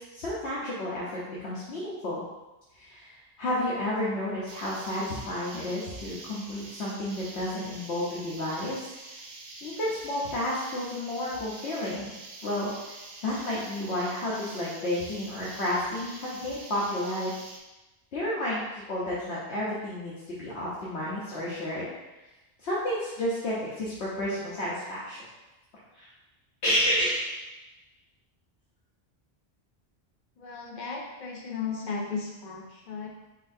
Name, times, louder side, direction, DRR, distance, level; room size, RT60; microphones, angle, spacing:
voice 1, 0.0-2.2 2.7-8.8 9.6-12.1 12.4-12.7 13.2-17.3 18.1-21.8 22.6-25.3 25.9-26.0 26.6-27.4 31.8-32.3, left 1 dB, 90° left, -7 dB, 1.2 m, -31 dB
sound 1, 4.5-17.6, right 2 dB, 55° right, 0.6 m, -45 dB
voice 2, 30.4-33.1, left 5 dB, 50° left, 0 dB, 0.8 m, -35 dB
4.3 x 4.2 x 2.7 m, 1.1 s
omnidirectional pair, 1.1 m